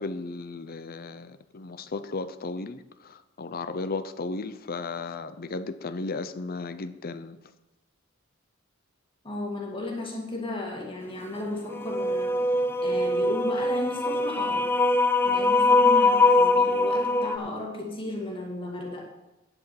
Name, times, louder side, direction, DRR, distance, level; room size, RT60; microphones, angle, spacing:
voice 1, 0.0-7.4, left 3 dB, 45° left, 12 dB, 0.7 m, -35 dB
voice 2, 9.2-12.4 12.8-14.7 15.2-19.0, left 2 dB, 25° left, -1 dB, 2.0 m, -34 dB
sound 1, 11.7-17.4, left 2 dB, 10° left, 0.5 m, -22 dB
11.0 x 6.2 x 7.3 m, 1.0 s
head